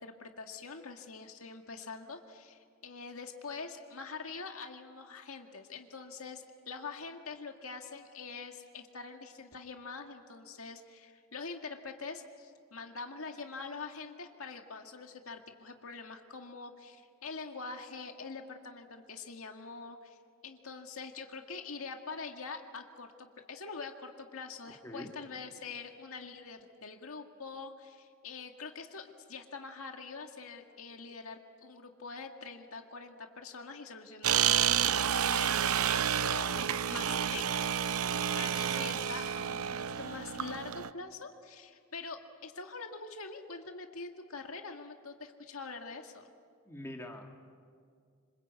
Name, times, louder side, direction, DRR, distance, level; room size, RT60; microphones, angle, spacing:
voice 1, 0.0-20.2 20.4-39.6 40.0-46.2, left 4 dB, 75° left, 4 dB, 2.0 m, -45 dB
sound 1, 34.2-40.9, right 9 dB, 80° right, 0.7 m, -30 dB
voice 2, 46.7-47.5, left 1 dB, 10° left, 2 dB, 2.2 m, -44 dB
27.0 x 26.0 x 8.4 m, 2.1 s
head